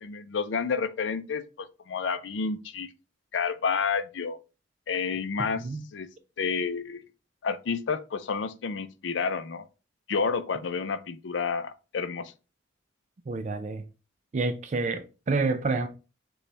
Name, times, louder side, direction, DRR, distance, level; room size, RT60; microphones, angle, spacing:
voice 1, 0.0-2.9 3.3-4.4 4.9-5.7 5.9-6.1 6.4-7.0 7.4-9.7 10.1-12.3, left 5 dB, 80° left, 0.5 m, -30 dB
voice 2, 5.4-5.8 13.3-13.8 14.3-15.9, right 3 dB, 40° right, 0.3 m, -29 dB
6.6 x 2.3 x 3.2 m
head